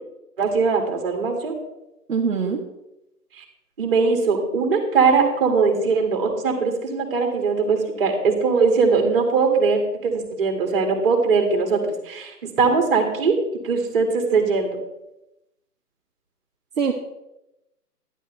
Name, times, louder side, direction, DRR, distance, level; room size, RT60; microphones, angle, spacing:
voice 1, 0.4-1.5 3.4-3.5 3.8-13.4 13.6-14.7, right 4 dB, 35° right, 3 dB, 2.3 m, -20 dB
voice 2, 2.1-2.6 16.8-16.9, right 6 dB, 55° right, -2 dB, 1.5 m, -22 dB
12.0 x 11.0 x 3.3 m, 0.89 s
hypercardioid pair, 160°, 48 cm